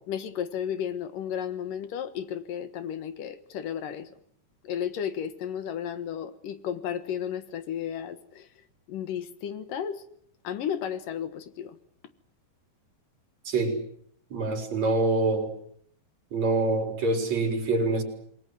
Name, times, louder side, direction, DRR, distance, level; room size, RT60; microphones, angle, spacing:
voice 1, 0.1-4.1 4.6-8.5 8.9-10.0 10.4-11.8, left 9 dB, 75° left, 11 dB, 3.1 m, -33 dB
voice 2, 13.5-13.8 14.3-15.5 16.3-18.0, right 3 dB, 50° right, 4 dB, 5.4 m, -25 dB
27.5 x 20.5 x 8.0 m, 0.64 s
omnidirectional pair, 3.9 m